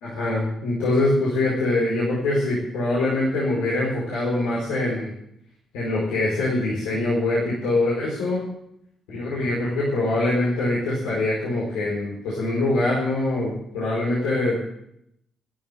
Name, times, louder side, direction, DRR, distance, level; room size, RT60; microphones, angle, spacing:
voice 1, 0.0-5.1 5.7-8.5 9.1-14.7, left 2 dB, 80° left, -6 dB, 4.5 m, -24 dB
12.5 x 11.5 x 7.5 m, 0.77 s
hypercardioid pair, 45°, 0 cm